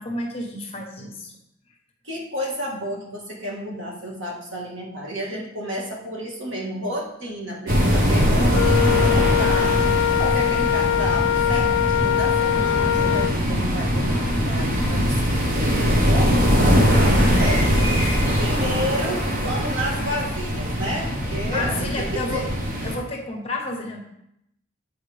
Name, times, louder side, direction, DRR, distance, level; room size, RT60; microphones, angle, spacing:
voice 1, 0.0-1.3 16.7-17.4 18.0-18.2 18.5-19.0 21.5-22.5 22.8-24.0, left 2 dB, 30° left, 1 dB, 1.1 m, -31 dB
voice 2, 2.0-15.4 15.9-16.6 16.9-22.5, equal, 80° right, -2 dB, 1.7 m, -31 dB
sound 1, 7.7-23.0, equal, 45° right, 1.0 m, -21 dB
Wind instrument woodwind instrument, 8.5-13.4, left 13 dB, 85° left, 0.3 m, -22 dB
sound 2, 12.7-20.4, left 1 dB, 25° right, 2.4 m, -38 dB
9.0 x 4.6 x 3.4 m, 0.79 s
head